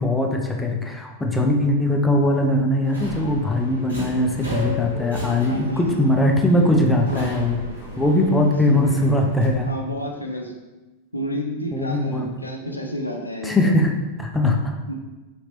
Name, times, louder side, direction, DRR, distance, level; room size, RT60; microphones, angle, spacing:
voice 1, 0.0-7.6 8.0-9.7 11.7-12.3 13.4-14.9, left 1 dB, 10° left, 2 dB, 0.5 m, -20 dB
Subway metro underground, 2.8-9.5, left 1 dB, 80° right, 1.0 m, -34 dB
voice 2, 5.2-6.0 7.1-7.3 8.6-9.1 9.6-10.5 11.1-13.6 14.9-15.0, equal, 85° left, 1 dB, 0.4 m, -30 dB
3.8 x 2.9 x 3.0 m, 1.1 s
figure-of-eight pair, 90°, 0 cm